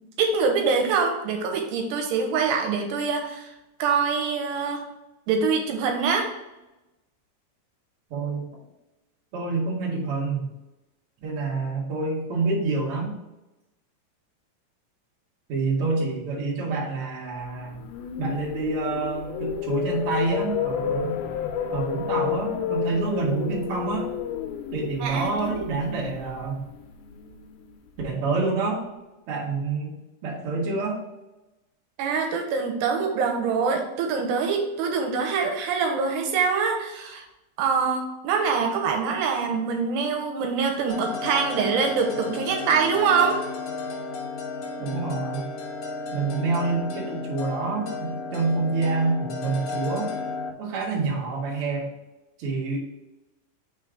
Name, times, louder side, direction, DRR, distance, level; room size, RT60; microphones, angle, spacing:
voice 1, 0.2-3.5 3.8-4.8 5.3-6.3 25.0-25.6 32.0-37.2 37.6-43.4, right 5 dB, 85° right, 2 dB, 2.8 m, -24 dB
voice 2, 8.1-8.5 9.3-10.5 11.2-13.1 15.5-17.8 18.2-21.2 21.7-24.1 24.7-26.6 28.0-28.8 29.3-31.0 44.8-45.5 46.1-50.1 50.6-51.9 52.4-52.8, right 3 dB, 60° right, -3 dB, 1.5 m, -27 dB
sound 1, 17.6-27.7, left 8 dB, 90° left, 2.1 m, -31 dB
sound 2, 40.9-50.5, left 4 dB, 75° left, 2.0 m, -33 dB
5.8 x 3.8 x 4.7 m, 0.98 s
omnidirectional pair, 5.0 m